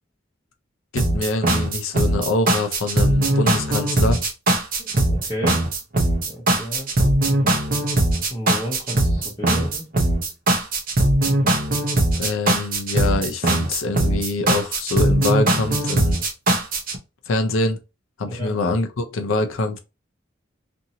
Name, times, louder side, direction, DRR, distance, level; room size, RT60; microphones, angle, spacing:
voice 1, 0.9-4.2 12.2-16.2 17.3-17.8 18.2-19.8, left 2 dB, 75° left, 0.6 m, -24 dB
sound 1, 1.0-17.0, right 1 dB, 45° right, 0.7 m, -20 dB
voice 2, 4.8-5.6 6.2-7.1 8.3-9.9 18.2-18.5, equal, 20° left, 0.8 m, -32 dB
2.7 x 2.6 x 2.8 m
head